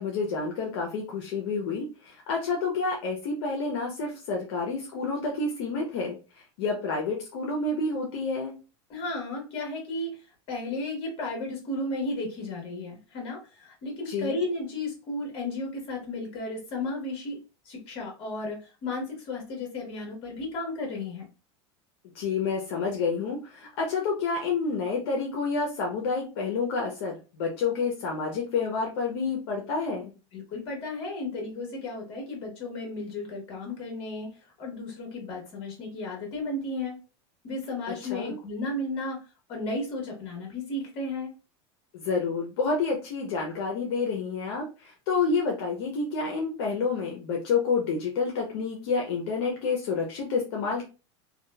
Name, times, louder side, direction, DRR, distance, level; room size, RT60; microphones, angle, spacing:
voice 1, 0.0-8.5 14.1-14.4 22.1-30.1 37.9-38.4 41.9-50.9, left 4 dB, 70° left, 0 dB, 0.7 m, -29 dB
voice 2, 8.9-10.2 10.5-17.4 17.6-21.2 30.3-37.0 37.4-41.3, left 2 dB, 40° left, 0 dB, 1.4 m, -34 dB
2.9 x 2.3 x 2.2 m, 0.32 s
supercardioid pair, 150°, 14 cm